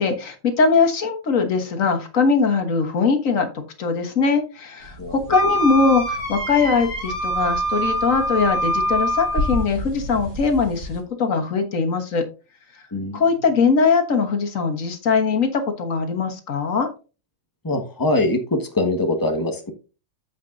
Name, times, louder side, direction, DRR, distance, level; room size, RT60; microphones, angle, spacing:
voice 1, 0.0-3.5 3.8-12.2 13.1-16.9, left 4 dB, 85° left, 1.7 m, -21 dB
sound 1, 4.8-11.0, equal, 70° right, 1.9 m, -33 dB
Wind instrument woodwind instrument, 5.3-9.7, right 1 dB, 40° left, 3.0 m, -24 dB
voice 2, 12.9-13.2 17.6-19.7, left 2 dB, 15° left, 1.3 m, -23 dB
14.5 x 5.1 x 2.6 m
omnidirectional pair, 1.3 m